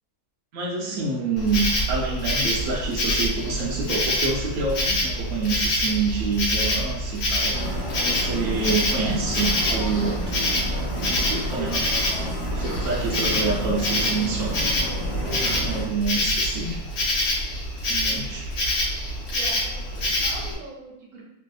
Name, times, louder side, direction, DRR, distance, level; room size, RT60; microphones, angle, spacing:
voice 1, 0.5-7.6 8.0-10.4 10.9-14.6 15.2-16.8 17.9-18.5, right 4 dB, 90° right, -3 dB, 0.7 m, -28 dB
Insect, 1.4-20.5, left 1 dB, 65° left, 1.2 m, -26 dB
sound 1, 7.5-15.9, equal, 30° left, 0.6 m, -30 dB
voice 2, 19.3-21.2, right 3 dB, 55° right, -3 dB, 0.9 m, -42 dB
3.4 x 2.5 x 2.3 m, 0.80 s
omnidirectional pair, 2.2 m